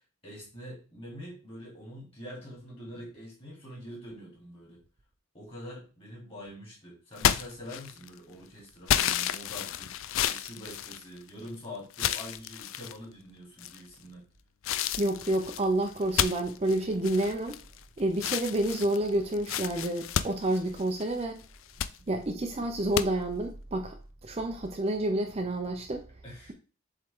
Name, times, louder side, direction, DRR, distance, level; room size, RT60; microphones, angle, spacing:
voice 1, 0.0-4.8 5.3-14.2 21.8-22.1 26.2-26.5, equal, 25° left, 3.4 m, -45 dB
sound 1, 7.2-8.2 8.9-11.5 11.9-13.0 13.6-14.1 14.6-17.8 18.1-21.1 21.5-22.0 22.9-23.1, left 10 dB, 65° left, 0.4 m, -31 dB
voice 2, 15.0-17.6 18.0-21.4 22.1-24.0 24.2-26.0, right 1 dB, 30° right, 0.6 m, -29 dB
7.6 x 3.7 x 3.7 m
head